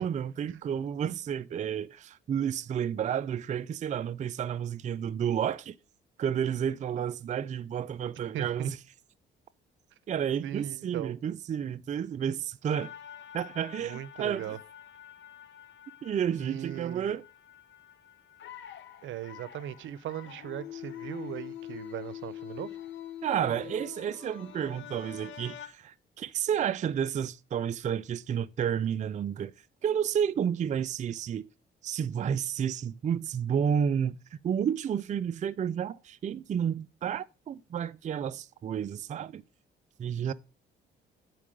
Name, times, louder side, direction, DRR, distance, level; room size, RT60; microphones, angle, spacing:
voice 1, 0.0-5.8 6.2-8.8 10.1-12.9 13.3-14.4 16.0-17.2 23.2-29.5 29.8-31.4 31.8-39.4 40.0-40.3, right 8 dB, 40° right, 0.4 m, -31 dB
voice 2, 8.3-8.7 10.4-11.2 13.8-14.6 16.4-17.2 19.0-22.8 40.2-40.3, right 11 dB, 75° right, 0.6 m, -38 dB
sound 1, 12.7-25.7, left 11 dB, 70° left, 1.0 m, -45 dB
9.0 x 4.6 x 4.9 m
cardioid pair, 90°, 20 cm